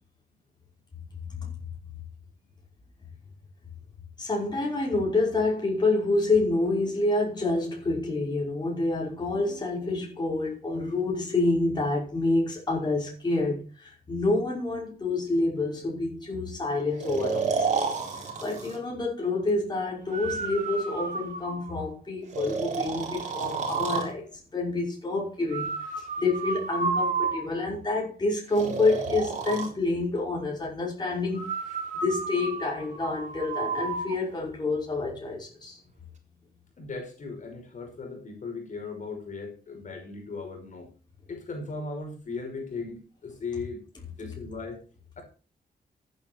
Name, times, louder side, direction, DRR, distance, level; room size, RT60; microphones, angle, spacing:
voice 1, 4.2-17.8 18.1-35.8 44.3-44.4, left 2 dB, 25° left, 5.5 m, -28 dB
Breathing, 17.0-18.8 20.1-21.8 22.3-24.1 25.5-27.8 28.5-29.7 31.3-34.2, right 4 dB, 45° right, 4.0 m, -31 dB
voice 2, 36.8-40.9 41.3-43.8 44.2-44.8, left 4 dB, 50° left, 5.3 m, -37 dB
15.0 x 9.4 x 4.5 m
wide cardioid pair, 145°, 17 cm